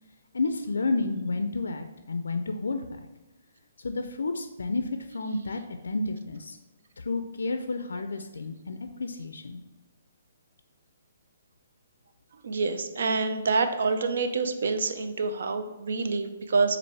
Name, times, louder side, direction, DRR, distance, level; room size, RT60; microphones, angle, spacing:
voice 1, 0.3-2.8 3.8-6.6 7.0-9.6, left 3 dB, 90° left, 7 dB, 0.3 m, -31 dB
voice 2, 12.4-16.8, right 4 dB, 65° right, 8 dB, 0.5 m, -27 dB
4.5 x 2.5 x 4.1 m, 1.1 s
hypercardioid pair, 160°, 0 cm